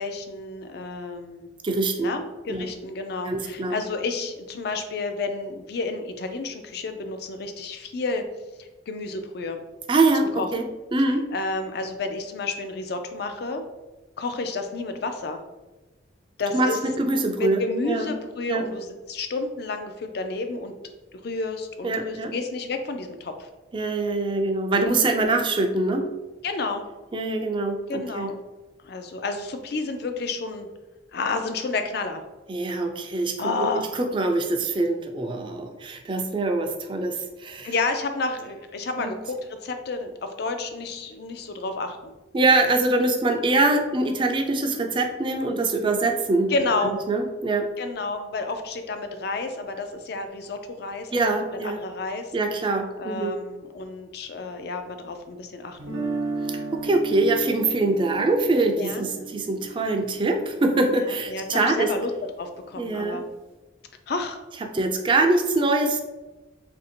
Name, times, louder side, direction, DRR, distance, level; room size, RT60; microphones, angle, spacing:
voice 1, 0.0-1.5 2.0-8.2 8.6-9.6 10.2-10.5 11.3-13.6 14.2-15.4 16.4-16.8 17.4-20.7 21.1-23.5 26.4-26.8 27.9-28.3 28.8-30.7 31.1-32.2 33.4-33.9 37.6-42.1 46.5-47.0 47.8-51.1 51.6-52.3 53.0-56.0 58.8-59.3 61.0-62.1 62.4-63.3 64.1-64.4, left 3 dB, 55° left, 7 dB, 0.4 m, -30 dB
voice 2, 1.6-2.1 2.5-2.7 3.2-3.8 9.9-10.6 10.9-11.2 16.5-17.6 17.9-18.1 18.5-18.7 21.8-22.3 23.7-26.1 27.1-28.3 32.5-33.7 33.9-37.7 39.0-39.1 42.3-46.5 47.1-47.7 51.1-51.8 52.3-53.4 56.5-61.9 62.7-63.2 64.6-66.0, right 2 dB, 25° right, 4 dB, 0.4 m, -24 dB
Guitar, 55.8-61.8, right 3 dB, 85° right, 0.8 m, -34 dB
2.8 x 2.6 x 4.3 m, 1.1 s
head